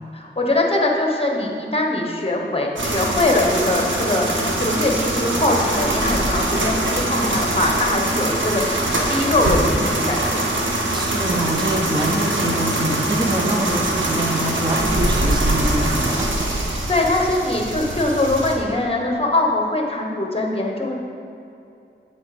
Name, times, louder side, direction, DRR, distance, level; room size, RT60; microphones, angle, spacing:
voice 1, 0.1-10.4 16.9-20.9, left 2 dB, 30° left, 0 dB, 1.1 m, -22 dB
sound 1, 2.8-18.6, right 1 dB, 85° right, 0.9 m, -23 dB
voice 2, 10.9-16.6, right 1 dB, 25° right, 3 dB, 0.7 m, -24 dB
7.4 x 4.3 x 4.9 m, 2.7 s
wide cardioid pair, 60°, 20 cm